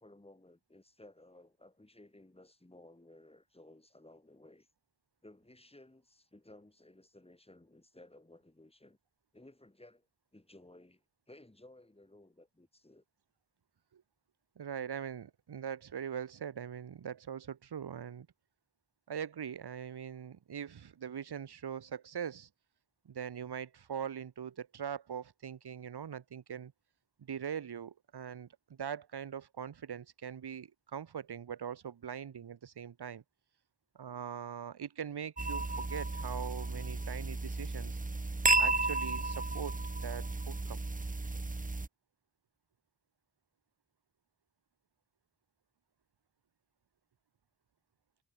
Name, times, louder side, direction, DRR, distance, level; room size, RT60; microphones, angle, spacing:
voice 1, 0.0-4.7 5.2-9.0 9.3-10.1 10.3-13.0, left 1 dB, 15° left, 8.0 m, -58 dB
voice 2, 14.6-18.3 19.1-22.5 23.1-26.7 27.2-28.5 28.8-33.2 34.0-38.0 38.6-39.8 40.0-40.8, right 8 dB, 80° right, 1.7 m, -42 dB
sound 1, 35.4-41.9, right 3 dB, 20° right, 1.4 m, -33 dB
wide cardioid pair, 110°, 39 cm